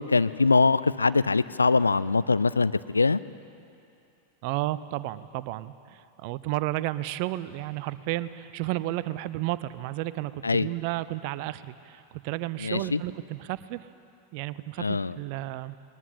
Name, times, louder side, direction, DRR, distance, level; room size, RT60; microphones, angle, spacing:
voice 1, 0.0-3.2 10.4-10.7 12.6-13.0 14.8-15.2, left 4 dB, 80° left, 16 dB, 0.5 m, -23 dB
voice 2, 4.4-13.9 14.3-15.8, right 16 dB, 45° right, 16 dB, 0.7 m, -32 dB
21.0 x 19.5 x 8.5 m, 2.6 s
figure-of-eight pair, 90°, 0 cm